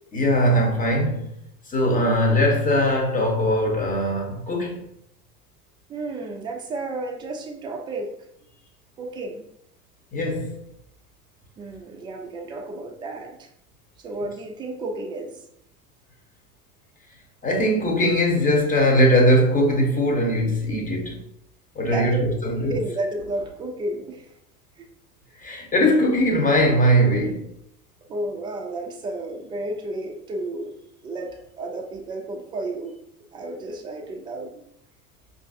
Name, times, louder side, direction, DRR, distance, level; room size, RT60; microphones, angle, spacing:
voice 1, 0.1-1.3 1.7-4.8 10.1-10.6 17.4-21.2 21.8-22.8 25.4-27.5, equal, 15° left, 0.9 m, -20 dB
voice 2, 5.9-8.1 9.0-9.5 11.6-13.5 14.0-15.4 21.8-22.2 22.6-24.3 24.8-24.9 28.1-30.7 31.0-32.9 33.3-34.6, right 2 dB, 10° right, 0.3 m, -32 dB
5.3 x 2.6 x 2.5 m
figure-of-eight pair, 80°, 46 cm